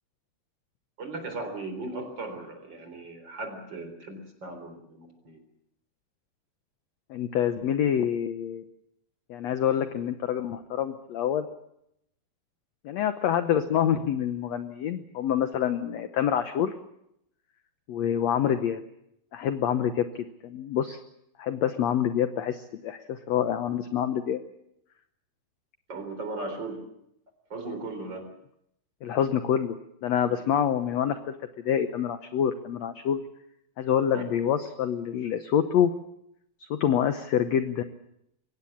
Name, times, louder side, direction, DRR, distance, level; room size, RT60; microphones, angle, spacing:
voice 1, 1.0-5.4 25.9-26.8 27.5-28.3 34.1-34.2, right 2 dB, 30° right, 7 dB, 4.2 m, -37 dB
voice 2, 7.1-8.7 9.3-11.4 12.8-16.7 17.9-18.8 19.3-20.0 20.4-21.0 21.4-24.4 29.0-29.8 30.0-31.2 31.6-33.2 33.8-35.9 36.7-37.8, left 9 dB, 70° left, 10 dB, 1.7 m, -26 dB
23.0 x 18.0 x 8.5 m, 0.77 s
omnidirectional pair, 4.2 m